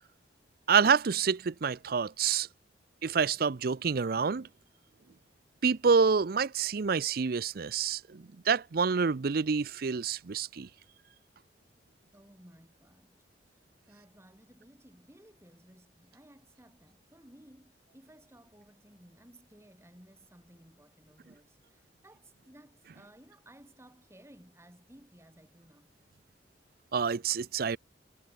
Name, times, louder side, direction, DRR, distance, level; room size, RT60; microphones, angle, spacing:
voice 1, 0.7-2.5 3.0-4.5 5.6-10.7 26.9-27.8, right 5 dB, 55° right, 0.5 m, -27 dB
voice 2, 12.1-25.9, right 1 dB, 15° right, 3.5 m, -58 dB
head